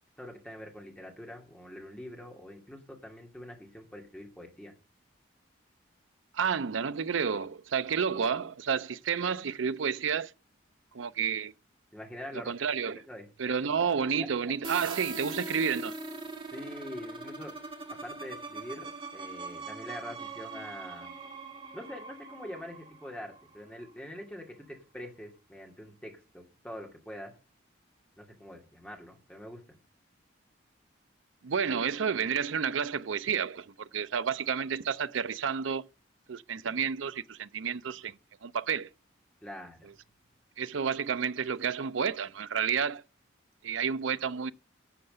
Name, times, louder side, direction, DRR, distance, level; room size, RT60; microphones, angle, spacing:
voice 1, 0.2-4.7 11.9-12.5 13.1-13.6 16.5-17.5 17.9-21.1 21.7-27.3 28.2-29.6 39.4-39.9, left 1 dB, 5° left, 2.5 m, -44 dB
voice 2, 6.3-10.3 10.9-11.5 12.5-13.0 13.4-15.9 31.4-35.9 36.3-38.1 38.4-38.9 40.6-43.0 43.6-44.5, right 6 dB, 80° right, 0.5 m, -30 dB
sound 1, 14.6-24.2, right 3 dB, 25° right, 2.1 m, -42 dB
11.0 x 6.6 x 7.9 m
head